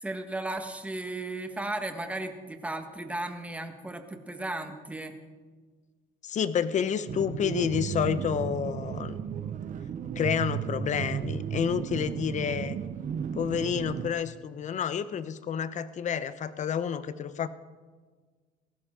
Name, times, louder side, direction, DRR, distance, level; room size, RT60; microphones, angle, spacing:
voice 1, 0.0-5.1, right 2 dB, 10° right, 6 dB, 1.5 m, -35 dB
voice 2, 6.2-9.2 10.2-12.8 13.4-17.5, left 8 dB, 45° left, 14 dB, 0.8 m, -29 dB
sound 1, 7.1-14.1, right 8 dB, 50° right, 0.7 m, -34 dB
19.0 x 15.5 x 3.8 m, 1.5 s
cardioid pair, 110°, 17 cm